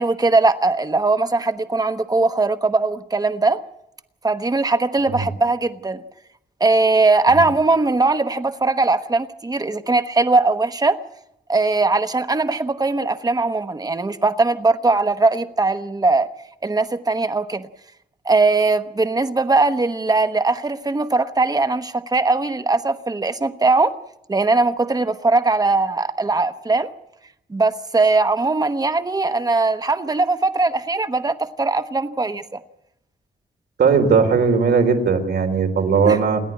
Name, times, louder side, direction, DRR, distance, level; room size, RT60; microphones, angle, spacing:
voice 1, 0.0-3.6 4.2-6.0 6.6-11.0 11.5-16.3 16.6-17.7 18.2-24.0 24.3-26.9 27.5-32.6 36.0-36.2, right 3 dB, 20° right, 1.1 m, -20 dB
voice 2, 33.8-36.4, right 5 dB, 80° right, 3.8 m, -17 dB
28.5 x 11.0 x 9.7 m
wide cardioid pair, 155°, 17 cm